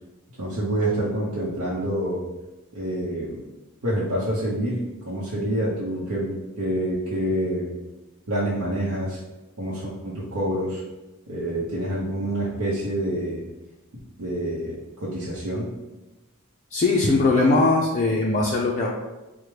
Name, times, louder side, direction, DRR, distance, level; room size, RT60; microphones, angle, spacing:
voice 1, 0.4-2.2 2.7-3.4 3.8-7.7 8.3-9.2 9.6-10.8 11.3-13.4 14.2-15.7, right 1 dB, 75° right, -8 dB, 0.8 m, -27 dB
voice 2, 16.7-18.9, left 3 dB, 35° left, -3 dB, 0.4 m, -20 dB
4.5 x 2.1 x 3.2 m, 1.1 s
head